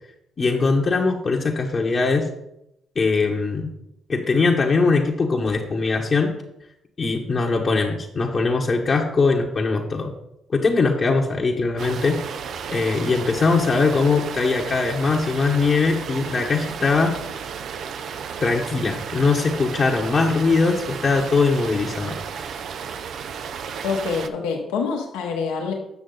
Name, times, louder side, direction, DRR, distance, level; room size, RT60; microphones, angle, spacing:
voice 1, 0.4-2.3 2.9-3.7 4.1-6.3 7.0-10.1 10.5-12.1 12.7-17.1 18.4-22.1, left 4 dB, 45° left, -1 dB, 1.1 m, -21 dB
sound 1, 11.8-24.3, right 7 dB, 65° right, 0.5 m, -33 dB
voice 2, 23.8-25.7, left 5 dB, 85° left, 0 dB, 1.2 m, -26 dB
8.3 x 6.3 x 3.9 m, 0.81 s
supercardioid pair, 55°, 0 cm